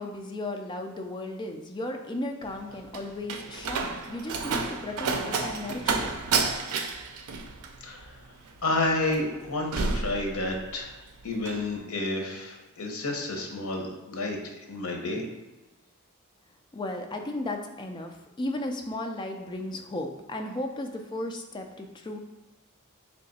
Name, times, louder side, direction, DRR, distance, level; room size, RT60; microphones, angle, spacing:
voice 1, 0.0-6.1 16.7-22.2, left 1 dB, 20° left, 3 dB, 0.4 m, -35 dB
Slam, 2.4-10.9 11.2-11.7, right 4 dB, 90° right, 0.4 m, -31 dB
voice 2, 7.8-8.1 8.6-10.9 11.2-15.2, left 2 dB, 75° left, 1 dB, 0.8 m, -30 dB
3.4 x 2.8 x 4.1 m, 1.1 s
head